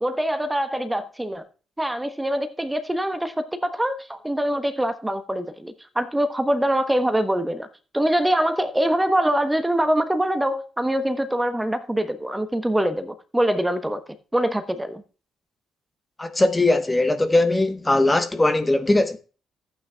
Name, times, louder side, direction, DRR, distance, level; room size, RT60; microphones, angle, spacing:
voice 1, 0.0-1.4 1.8-7.7 7.9-14.0 14.3-15.0, right 1 dB, 10° right, 1.0 m, -24 dB
voice 2, 16.2-19.2, left 2 dB, 20° left, 1.1 m, -20 dB
14.0 x 8.9 x 2.3 m
figure-of-eight pair, 40°, 0 cm